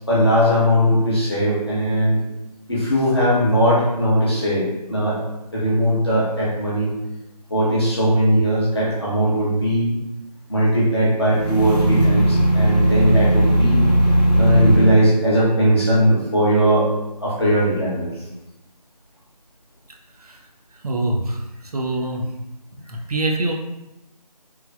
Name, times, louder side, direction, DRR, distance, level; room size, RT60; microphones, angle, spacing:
voice 1, 0.1-2.2 2.7-5.2 5.5-6.9 7.5-9.9 10.5-13.8 14.4-16.9 17.2-18.1, equal, 40° left, -7 dB, 0.8 m, -19 dB
sound 1, 11.3-15.0, right 1 dB, 70° left, 0.6 m, -17 dB
voice 2, 20.8-21.4 21.7-22.2 22.7-23.5, right 2 dB, 65° right, 1 dB, 0.5 m, -24 dB
3.1 x 2.1 x 2.2 m, 0.95 s
figure-of-eight pair, 180°, 21 cm